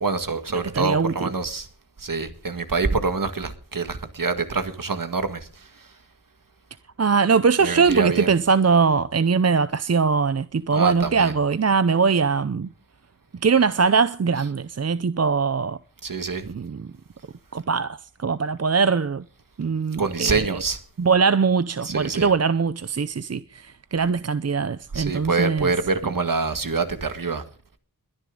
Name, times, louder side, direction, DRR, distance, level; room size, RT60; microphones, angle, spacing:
voice 1, 0.0-1.7 2.0-5.4 7.6-8.3 10.7-11.3 16.0-16.5 20.0-20.8 21.8-22.3 24.9-27.4, right 4 dB, 65° right, 1.9 m, -25 dB
voice 2, 0.7-1.3 7.0-12.7 13.4-15.8 16.5-16.9 17.5-19.2 19.6-20.6 21.0-23.4 23.9-25.7, right 5 dB, 45° right, 0.6 m, -21 dB
22.0 x 10.5 x 3.8 m
wide cardioid pair, 65°, 36 cm